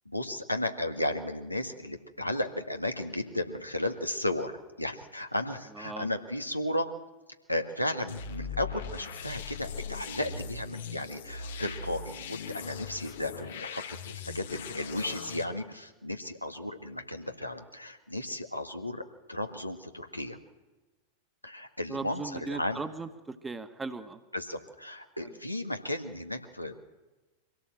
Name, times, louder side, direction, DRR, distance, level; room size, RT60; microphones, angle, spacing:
voice 1, 0.1-4.5 4.8-6.9 7.5-20.4 21.4-22.8 24.3-26.8, left 1 dB, 90° left, 5 dB, 1.8 m, -34 dB
voice 2, 5.7-6.1 21.9-24.2, right 3 dB, 10° right, 9 dB, 1.6 m, -38 dB
sound 1, 8.1-15.4, left 6 dB, 60° left, 1.5 m, -40 dB
24.5 x 17.0 x 7.7 m, 1.2 s
figure-of-eight pair, 90°, 0 cm